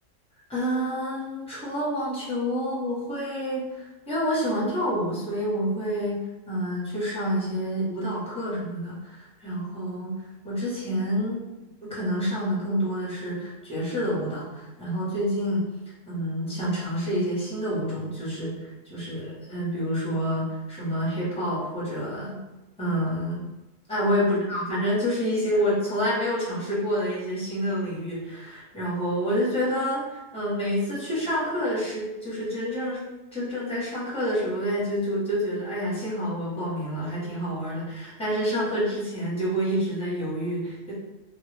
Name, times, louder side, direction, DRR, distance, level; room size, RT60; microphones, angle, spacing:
voice 1, 0.5-10.2 10.4-11.4 11.8-15.6 16.1-22.4 22.8-23.4 23.9-33.0 33.3-40.9, equal, 5° left, -8 dB, 0.9 m, -28 dB
2.4 x 2.3 x 3.2 m, 1.1 s
omnidirectional pair, 1.3 m